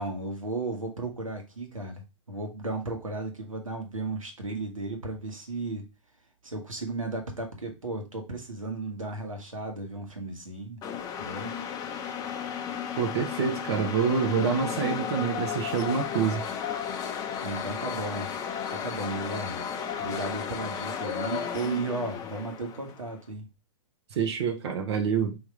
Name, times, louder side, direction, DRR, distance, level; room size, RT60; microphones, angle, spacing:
voice 1, 0.0-5.8 6.4-10.8 11.2-11.5 17.4-18.3 18.7-19.6 20.0-23.5, right 2 dB, 85° right, 1.6 m, -34 dB
sound 1, 10.8-23.1, left 8 dB, 20° left, 0.6 m, -34 dB
voice 2, 13.0-16.4 24.1-25.4, right 6 dB, 55° right, 0.8 m, -27 dB
3.6 x 3.1 x 4.8 m
figure-of-eight pair, 110°, 17 cm